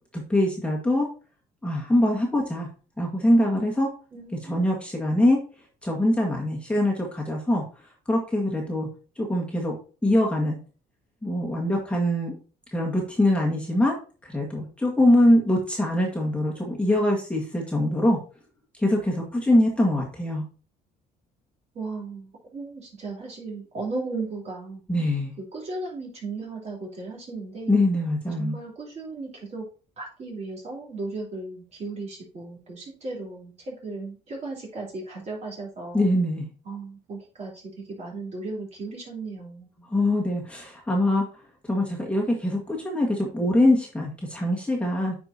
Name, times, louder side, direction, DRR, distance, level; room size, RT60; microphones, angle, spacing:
voice 1, 0.1-1.1 1.6-2.7 3.0-3.9 4.4-5.4 5.8-7.6 8.1-8.9 9.2-9.7 10.0-10.6 11.2-12.3 12.7-13.9 14.2-18.2 18.8-20.4 24.9-25.3 27.7-28.6 35.9-36.4 39.9-41.2 41.7-45.1, left 1 dB, 5° left, -2 dB, 1.6 m, -23 dB
voice 2, 4.1-4.6 21.7-24.8 25.5-27.8 28.3-29.6 30.0-36.1 36.6-39.8, right 3 dB, 40° right, -2 dB, 3.4 m, -36 dB
9.0 x 4.9 x 2.7 m, 0.37 s
cardioid pair, 110°, 17 cm